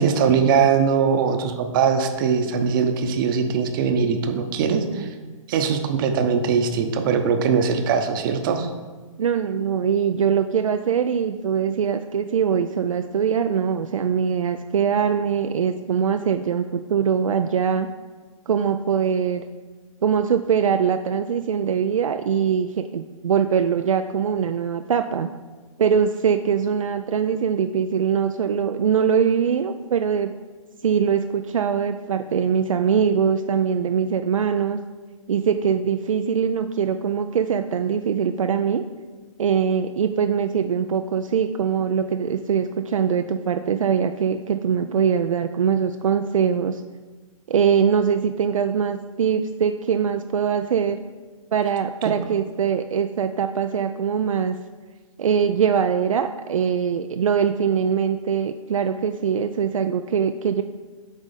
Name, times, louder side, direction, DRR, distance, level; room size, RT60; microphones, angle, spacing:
voice 1, 0.0-5.1 5.5-8.7 52.0-52.1, right 6 dB, 40° right, 6 dB, 0.8 m, -21 dB
voice 2, 9.2-17.9 18.5-19.4 20.0-25.3 25.8-30.3 30.8-34.8 35.3-38.8 39.4-46.8 47.5-51.0 51.5-54.6 55.2-60.6, right 7 dB, 70° right, 7 dB, 0.4 m, -22 dB
8.4 x 3.5 x 5.1 m, 1.3 s
figure-of-eight pair, 130°, 17 cm